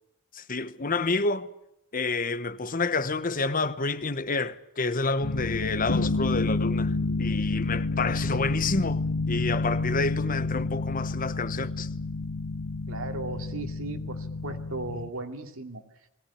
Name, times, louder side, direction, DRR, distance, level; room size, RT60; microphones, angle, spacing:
voice 1, 0.3-1.5 1.9-6.9 7.2-11.9, left 3 dB, 40° left, 1.1 m, -29 dB
sound 1, 5.2-15.1, left 3 dB, 75° left, 1.5 m, -29 dB
voice 2, 12.9-15.8, right 2 dB, 70° right, 2.6 m, -36 dB
21.0 x 18.0 x 9.9 m
head